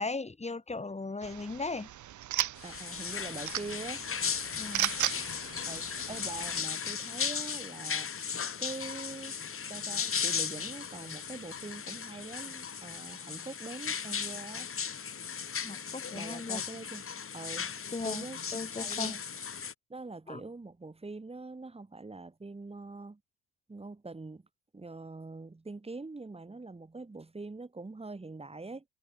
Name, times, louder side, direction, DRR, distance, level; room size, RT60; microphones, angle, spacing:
voice 1, 0.0-1.9 4.6-4.9 15.6-16.6 17.9-18.3 18.5-19.2 20.3-20.4, left 3 dB, 15° left, 7.0 m, -37 dB
sound 1, 1.2-6.6, right 12 dB, 45° right, 1.1 m, -37 dB
sound 2, 2.6-19.7, left 7 dB, 35° left, 3.5 m, -36 dB
voice 2, 2.6-4.0 4.5-4.7 5.7-8.1 8.6-9.4 9.7-14.7 16.1-17.1 17.3-17.7 18.0-18.4 18.7-19.2 19.9-23.2 23.7-24.4 24.7-28.8, right 3 dB, 15° right, 4.0 m, -43 dB
cardioid pair, 100°, 40 cm